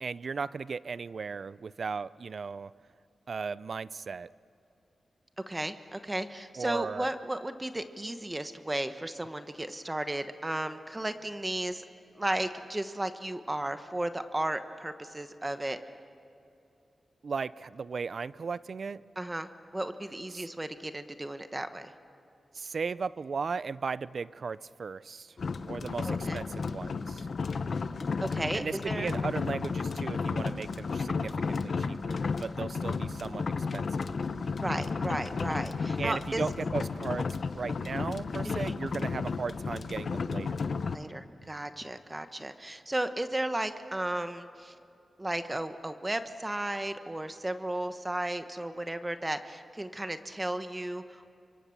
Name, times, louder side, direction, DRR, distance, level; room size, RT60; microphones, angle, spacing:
voice 1, 0.0-2.7 3.3-4.3 6.6-7.1 17.2-19.0 20.3-20.5 22.5-25.4 25.7-27.3 28.5-34.1 36.0-40.7, right 5 dB, 65° right, 18 dB, 0.5 m, -36 dB
voice 2, 5.5-11.8 12.2-15.8 19.2-21.9 26.0-26.4 28.2-29.1 34.6-36.4 38.4-38.7 40.9-44.7 45.2-51.3, right 1 dB, 20° right, 9 dB, 1.2 m, -34 dB
sound 1, 25.4-41.0, left 4 dB, 65° left, 0.9 m, -33 dB
27.5 x 24.0 x 7.2 m, 2.7 s
cardioid pair, 65°, 0 cm